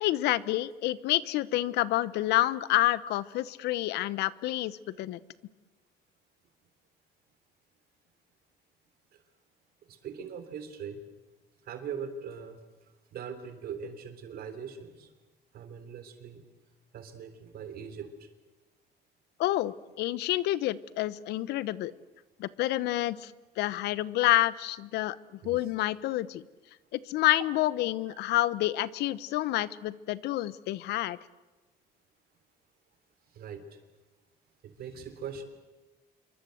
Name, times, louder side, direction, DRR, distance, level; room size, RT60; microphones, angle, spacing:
voice 1, 0.0-5.2 19.4-21.9 22.4-25.2 25.4-26.4 26.9-31.2, left 15 dB, 85° left, 19 dB, 0.9 m, -28 dB
voice 2, 9.9-11.0 11.6-12.6 13.1-15.1 15.5-16.4 16.9-18.3 25.4-25.7 27.4-27.5 28.1-28.2 33.3-33.8 34.6-35.4, right 6 dB, 65° right, 10 dB, 3.5 m, -41 dB
27.0 x 23.5 x 7.9 m, 1.2 s
cardioid pair, 110°, 17 cm